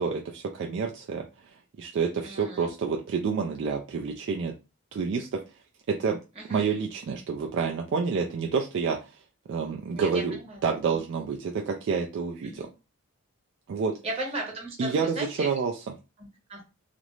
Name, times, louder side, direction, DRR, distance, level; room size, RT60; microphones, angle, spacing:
voice 1, 0.0-4.5 4.9-5.4 5.9-6.2 6.5-9.2 9.5-10.4 10.6-12.7 13.7-13.9 14.8-15.7, right 5 dB, 55° right, 1 dB, 0.3 m, -28 dB
voice 2, 2.2-2.7 6.3-6.6 9.9-10.6 10.9-11.1 12.4-12.7 14.0-15.5 16.2-16.6, right 2 dB, 30° right, -1 dB, 1.0 m, -36 dB
2.5 x 2.0 x 3.0 m, 0.29 s
head